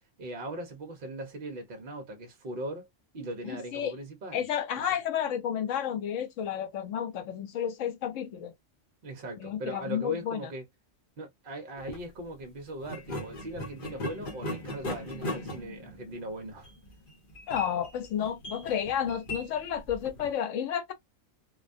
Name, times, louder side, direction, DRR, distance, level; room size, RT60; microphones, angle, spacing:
voice 1, 0.2-2.9 3.1-4.4 4.8-4.9 9.0-10.7 11.2-16.7, right 1 dB, 50° right, 0.7 m, -39 dB
voice 2, 3.4-3.9 4.3-8.5 9.4-10.5 17.5-20.9, left 9 dB, 75° left, 1.0 m, -31 dB
sound 1, 11.8-12.0 12.8-20.3, left 1 dB, 45° left, 0.9 m, -39 dB
2.3 x 2.2 x 2.4 m
omnidirectional pair, 1.4 m